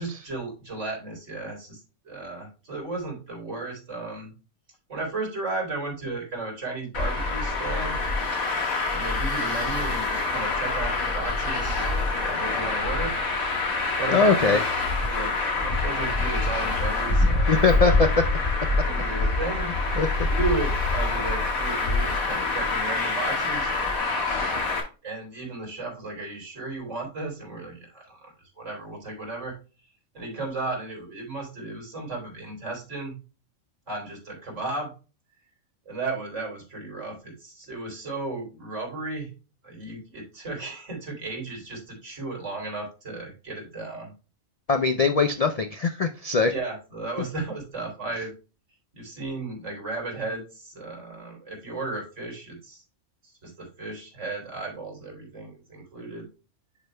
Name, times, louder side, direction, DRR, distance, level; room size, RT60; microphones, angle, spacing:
voice 1, 0.0-4.3 4.9-8.1 8.9-11.9 12.2-13.1 14.0-14.6 15.1-17.6 18.7-19.7 20.3-23.7 25.0-29.5 30.1-33.2 33.9-34.9 35.9-39.3 39.6-44.1 46.5-48.3 48.9-52.8 53.2-56.3, right 3 dB, 60° right, 0 dB, 3.8 m, -34 dB
Traffic noise roadway noise, 6.9-24.8, left 3 dB, 85° left, 2.1 m, -26 dB
voice 2, 14.1-14.6 17.5-18.1 20.0-20.1 44.7-46.5, left 4 dB, 65° left, 7 dB, 0.3 m, -21 dB
10.5 x 5.0 x 2.2 m, 0.33 s
omnidirectional pair, 1.4 m